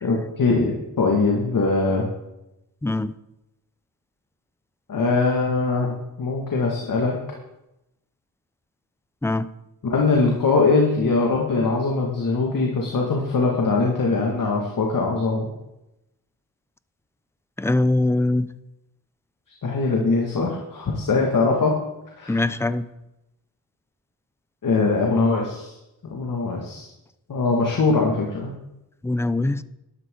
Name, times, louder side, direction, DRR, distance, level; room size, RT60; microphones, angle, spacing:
voice 1, 0.0-2.1 4.9-7.2 9.8-15.5 19.6-21.8 22.2-22.5 24.6-25.7 26.0-26.9 27.3-28.5, left 3 dB, 55° left, -1 dB, 2.1 m, -22 dB
voice 2, 2.8-3.1 9.2-9.5 17.6-18.5 22.3-22.8 29.0-29.6, left 2 dB, 5° left, 15 dB, 0.5 m, -22 dB
12.0 x 11.5 x 3.9 m, 0.91 s
cardioid pair, 85°, 40 cm